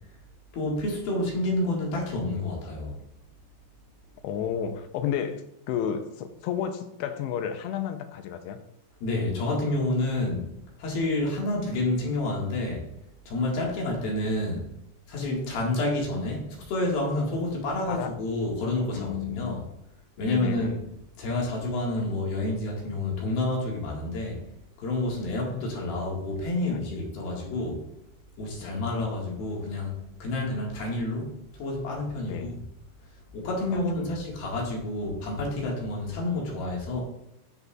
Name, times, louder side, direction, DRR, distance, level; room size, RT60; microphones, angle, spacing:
voice 1, 0.5-3.0 9.0-10.5 10.8-12.8 13.3-14.6 15.1-19.6 20.2-20.8 21.2-24.4 24.8-27.8 28.4-32.6 33.3-37.0, left 2 dB, 65° left, -2 dB, 3.5 m, -29 dB
voice 2, 4.2-8.6 13.5-13.7 17.9-18.1 18.9-19.6 20.2-20.8 21.9-22.0 26.7-26.8 28.6-28.8 32.3-32.5 33.7-34.2, left 8 dB, 90° left, 8 dB, 2.8 m, -32 dB
12.5 x 6.9 x 2.4 m, 0.83 s
omnidirectional pair, 4.9 m